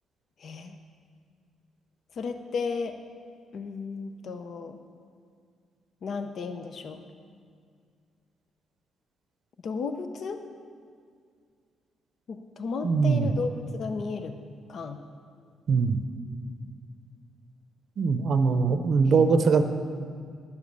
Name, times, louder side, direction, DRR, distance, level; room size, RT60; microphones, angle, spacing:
voice 1, 0.4-0.8 2.2-3.0 3.5-4.8 6.0-7.0 9.6-10.4 12.3-14.3 14.7-15.0 19.0-19.3, left 4 dB, 55° left, 7 dB, 0.7 m, -34 dB
voice 2, 12.8-13.3 15.7-16.0 18.0-19.6, right 5 dB, 55° right, 9 dB, 0.6 m, -22 dB
11.0 x 7.2 x 6.6 m, 2.2 s
cardioid pair, 90°, 0 cm